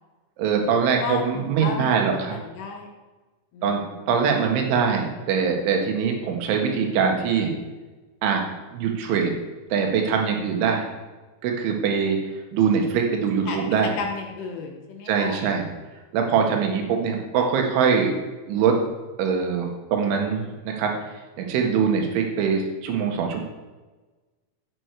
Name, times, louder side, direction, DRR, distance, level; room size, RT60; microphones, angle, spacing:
voice 1, 0.4-2.4 3.6-3.8 4.1-7.5 8.2-8.4 8.7-9.3 9.7-10.9 11.4-12.2 12.5-13.9 15.1-15.7 16.1-18.1 18.5-18.8 19.2-20.9 21.4-23.4, right 6 dB, 70° right, 2 dB, 3.9 m, -23 dB
voice 2, 1.0-2.9 3.5-4.5 13.4-13.6 14.0-15.4 17.3-17.5, left 5 dB, 65° left, 0 dB, 3.0 m, -34 dB
13.5 x 8.7 x 4.7 m, 1.2 s
omnidirectional pair, 5.9 m